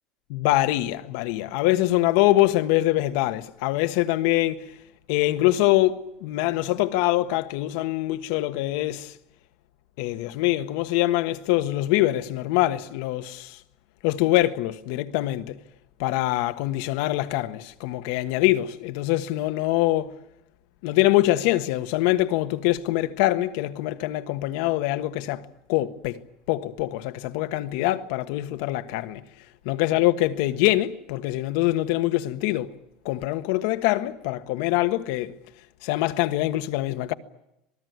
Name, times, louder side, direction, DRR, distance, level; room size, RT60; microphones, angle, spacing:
voice 1, 0.3-4.7 5.1-9.1 10.0-13.6 14.0-15.6 16.0-20.1 20.8-26.2 26.5-29.2 29.6-32.7 33.0-35.4 35.8-37.1, left 16 dB, 70° left, 1.3 m, -24 dB
26.5 x 19.5 x 9.4 m
cardioid pair, 150°, 0 cm